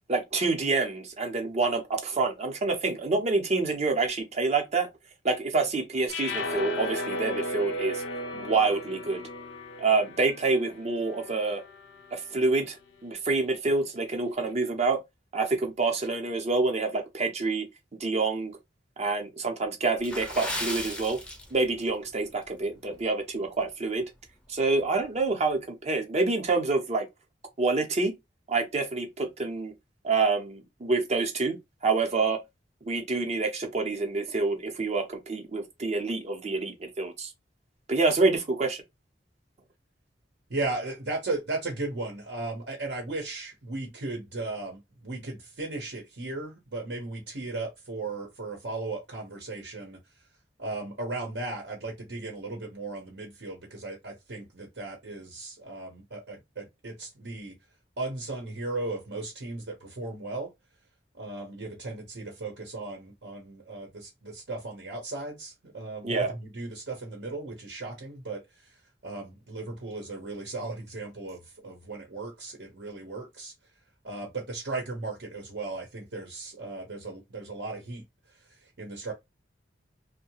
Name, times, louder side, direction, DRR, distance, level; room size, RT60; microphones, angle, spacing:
voice 1, 0.1-4.9 5.2-8.0 8.3-9.2 9.8-11.6 12.1-12.8 13.0-15.0 15.3-17.7 18.0-18.5 19.0-21.2 21.5-24.1 24.5-27.1 27.6-28.2 28.5-29.7 30.0-31.6 31.8-32.4 32.8-37.3 37.9-38.8 66.0-66.3, right 3 dB, 40° right, 0.7 m, -27 dB
sound 1, 6.1-12.4, left 1 dB, 85° left, 0.6 m, -35 dB
Water / Splash splatter, 20.0-21.9 22.2-22.4 23.0-23.2 23.7-23.8, left 1 dB, 5° left, 0.5 m, -35 dB
voice 2, 40.5-50.0 50.6-57.6 58.0-60.5 61.2-68.7 69.0-73.5 74.0-78.0 78.8-79.1, right 2 dB, 70° right, 0.8 m, -36 dB
2.7 x 2.1 x 2.8 m
head